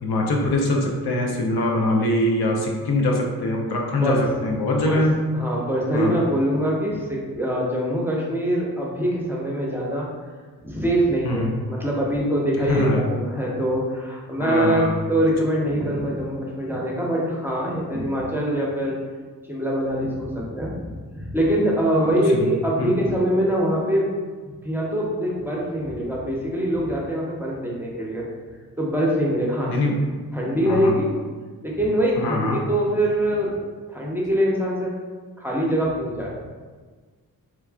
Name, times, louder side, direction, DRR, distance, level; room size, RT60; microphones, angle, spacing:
voice 1, 0.0-5.1 5.9-6.1 11.2-11.5 12.7-13.0 14.4-14.9 21.9-22.5 22.8-22.9 29.7-30.0 30.7-30.9 32.2-32.6, left 1 dB, 80° left, 0 dB, 0.6 m, -23 dB
voice 2, 5.3-10.1 10.6-14.8 15.1-19.0 19.5-24.1 24.6-28.3 28.8-29.7 30.3-31.1 31.6-34.9 35.4-36.4, equal, 5° right, -4 dB, 0.7 m, -23 dB
3.2 x 2.3 x 2.3 m, 1.4 s
cardioid pair, 55°, 37 cm